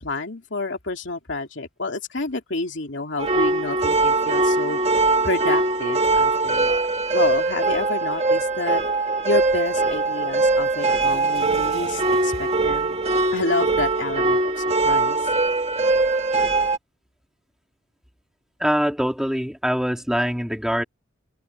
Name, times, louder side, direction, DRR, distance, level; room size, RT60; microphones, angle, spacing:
voice 1, 0.0-4.8 5.2-6.8 7.1-8.8 9.2-13.0 13.3-15.2, left 3 dB, 65° left, 2.8 m, -29 dB
sound 1, 3.2-16.8, right 3 dB, 30° right, 2.4 m, -21 dB
voice 2, 18.6-20.8, equal, ahead, 4.5 m, -23 dB
head